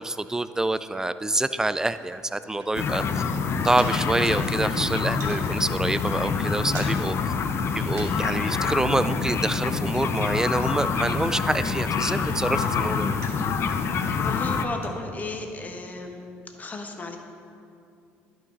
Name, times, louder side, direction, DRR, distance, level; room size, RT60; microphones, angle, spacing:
voice 1, 0.0-3.0 3.6-7.2 7.8-13.1, right 2 dB, 10° right, 13 dB, 0.3 m, -26 dB
sound 1, 1.8-3.1 3.3-4.4 4.7-5.5 5.9-6.1 6.3-7.2 7.5-8.3 8.6-10.9 11.3-13.6 14.1-15.0, right 3 dB, 55° right, 1.8 m, -46 dB
sound 2, 2.7-14.6, left 5 dB, 50° left, 0.6 m, -26 dB
voice 2, 14.2-16.2 16.6-17.2, left 3 dB, 30° left, 4 dB, 1.1 m, -34 dB
11.0 x 6.2 x 4.0 m, 2.5 s
supercardioid pair, 75°, 6 cm